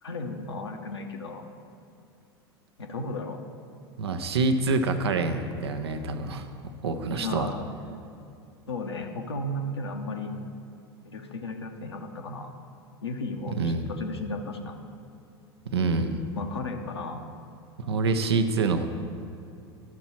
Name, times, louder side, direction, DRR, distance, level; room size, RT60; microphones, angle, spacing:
voice 1, 0.0-1.5 2.8-3.4 7.2-7.7 8.7-10.4 11.0-12.5 13.0-14.8 16.3-17.3, left 2 dB, 85° left, 3 dB, 0.7 m, -34 dB
voice 2, 4.0-6.5 6.8-7.5 13.5-13.8 15.7-16.2 17.8-18.9, right 3 dB, 80° right, 8 dB, 0.7 m, -26 dB
11.5 x 6.0 x 4.3 m, 2.5 s
hypercardioid pair, 85°, 14 cm